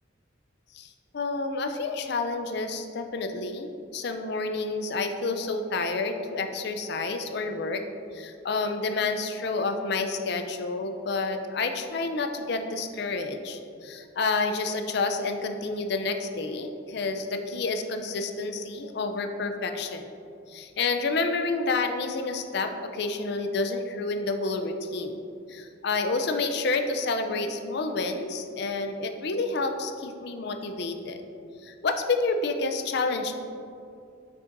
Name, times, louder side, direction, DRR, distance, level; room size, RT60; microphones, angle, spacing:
voice 1, 0.7-7.8 8.1-20.1 20.5-25.2 25.5-31.2 31.6-33.3, left 3 dB, 60° left, 7 dB, 0.5 m, -29 dB
6.7 x 6.0 x 2.6 m, 2.5 s
head